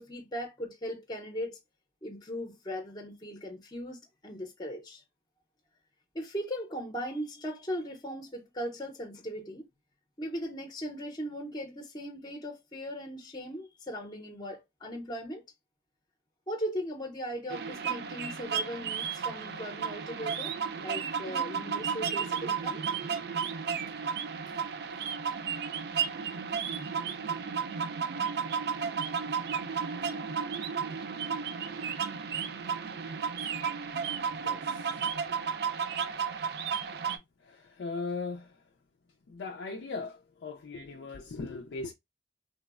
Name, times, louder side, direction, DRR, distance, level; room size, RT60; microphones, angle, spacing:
voice 1, 0.0-1.6 2.0-5.0 6.1-9.6 10.2-15.4 16.5-22.8, equal, 25° left, 0.6 m, -38 dB
sound 1, 17.5-37.2, right 6 dB, 60° right, 0.4 m, -33 dB
voice 2, 37.8-38.4 39.3-40.1 40.4-41.9, left 3 dB, 75° left, 0.4 m, -37 dB
3.2 x 2.0 x 2.3 m
head